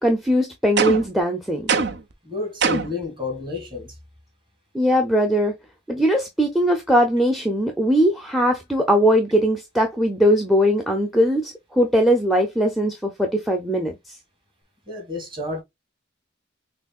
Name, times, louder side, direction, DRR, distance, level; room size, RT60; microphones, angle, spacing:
voice 1, 0.0-1.7 4.7-5.5 5.9-14.2, equal, ahead, 0.5 m, -20 dB
sound 1, 0.8-1.2 1.7-2.1 2.6-3.0, right 5 dB, 60° right, 0.6 m, -22 dB
voice 2, 2.2-4.0 14.9-15.6, left 3 dB, 25° right, 1.7 m, -30 dB
6.0 x 2.8 x 2.4 m
head